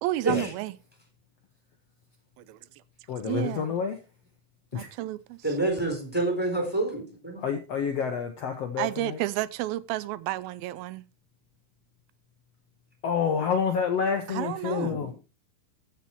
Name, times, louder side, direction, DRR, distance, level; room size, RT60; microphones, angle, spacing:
voice 1, 0.0-0.7 2.4-2.6 3.2-3.7 4.7-5.4 8.8-11.1 14.3-15.0, right 16 dB, 85° right, 2.5 m, -31 dB
voice 2, 3.1-4.0 4.7-5.0 7.4-9.2 13.0-15.1, left 6 dB, 65° left, 1.7 m, -28 dB
voice 3, 5.4-7.4 14.7-15.1, right 2 dB, 5° right, 3.5 m, -28 dB
14.5 x 5.9 x 4.5 m
omnidirectional pair, 4.1 m